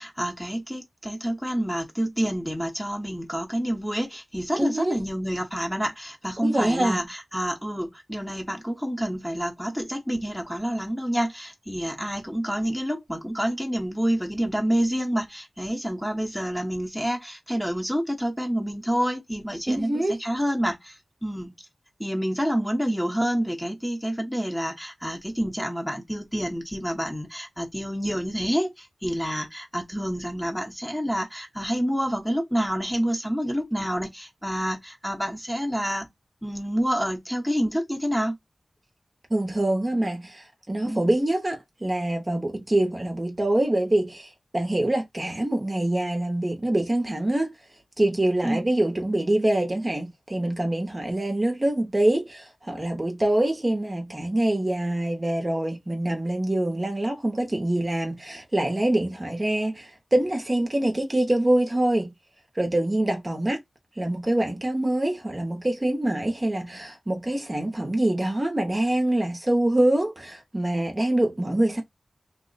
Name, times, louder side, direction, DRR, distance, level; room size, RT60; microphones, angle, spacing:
voice 1, 0.0-21.5 22.0-36.1 36.4-38.4 40.9-41.1 48.4-48.6, equal, 5° left, 0.8 m, -28 dB
voice 2, 4.6-5.0 6.4-7.0 19.7-20.2 39.3-47.5 48.0-62.1 62.6-63.6 64.0-71.8, right 1 dB, 25° right, 0.7 m, -25 dB
3.0 x 2.0 x 3.9 m
wide cardioid pair, 100°, 0 cm